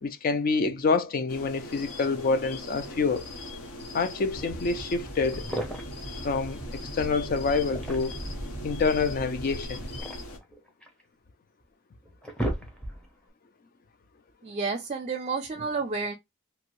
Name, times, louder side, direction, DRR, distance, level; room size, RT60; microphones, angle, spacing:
voice 1, 0.0-3.3 3.9-5.5 6.2-8.2 8.6-9.8, left 4 dB, 45° left, 0.4 m, -27 dB
sound 1, 1.3-10.4, left 1 dB, 85° left, 0.8 m, -40 dB
sound 2, 4.3-10.0, right 1 dB, 60° left, 2.0 m, -41 dB
sound 3, 5.3-6.1 7.5-8.4 9.6-11.0 11.6-11.7 12.0-13.2, right 1 dB, 5° left, 0.7 m, -35 dB
voice 2, 14.4-16.1, right 4 dB, 30° right, 0.4 m, -30 dB
2.7 x 2.6 x 3.0 m
head